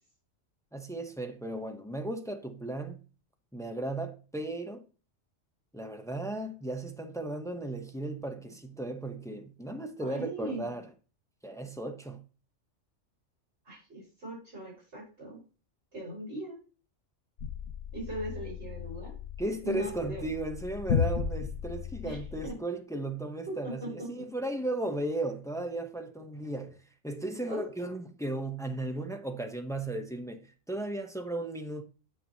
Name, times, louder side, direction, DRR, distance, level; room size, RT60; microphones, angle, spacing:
voice 1, 0.7-3.0 3.5-4.8 5.7-10.8 11.4-12.2 19.4-26.8 27.0-31.8, right 2 dB, 5° left, 0.4 m, -35 dB
voice 2, 10.0-10.6 13.6-15.4 15.9-16.6 17.9-19.1 19.6-20.3 22.0-22.2 22.4-22.5 23.5-24.1 27.4-27.7, right 1 dB, 60° right, 4.9 m, -39 dB
sound 1, 17.4-22.5, left 8 dB, 75° left, 1.0 m, -35 dB
9.0 x 5.8 x 2.7 m
omnidirectional pair, 1.3 m